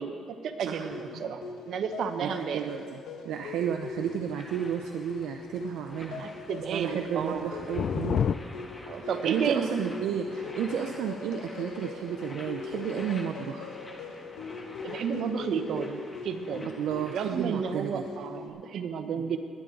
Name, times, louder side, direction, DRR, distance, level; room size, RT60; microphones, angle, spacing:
voice 1, 0.0-2.7 6.2-7.5 8.9-9.8 14.8-16.7 17.1-19.4, right 7 dB, 70° right, 7 dB, 1.0 m, -32 dB
sound 1, 0.9-18.5, left 5 dB, 85° left, 1.0 m, -41 dB
voice 2, 2.2-3.0 3.2-6.2 6.7-8.2 9.0-13.7 16.8-18.0, right 9 dB, 85° right, 4 dB, 0.6 m, -32 dB
sound 2, 4.0-17.7, left 2 dB, 25° left, 1.6 m, -48 dB
sound 3, 6.0-6.3 6.7-8.4, left 8 dB, 60° left, 0.3 m, -30 dB
20.5 x 9.4 x 3.9 m, 2.4 s
cardioid pair, 90°, 0 cm